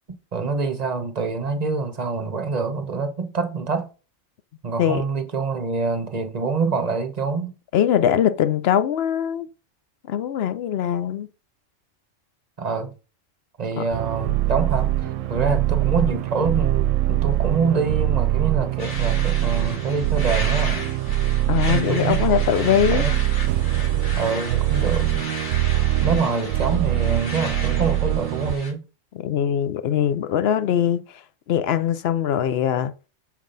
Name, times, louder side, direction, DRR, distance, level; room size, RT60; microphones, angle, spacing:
voice 1, 0.3-3.9 4.6-7.5 12.6-12.9 13.6-20.9 21.7-23.1 24.2-25.2 26.0-28.8, right 4 dB, 35° right, 0.9 m, -26 dB
voice 2, 7.7-9.5 10.1-11.3 13.8-13.9 21.5-23.0 29.1-31.0 31.5-32.9, left 9 dB, 60° left, 0.7 m, -21 dB
sound 1, 13.9-28.6, right 14 dB, 75° right, 0.9 m, -23 dB
sound 2, 18.8-28.7, left 2 dB, 40° left, 1.4 m, -35 dB
7.3 x 4.6 x 3.9 m
omnidirectional pair, 1.4 m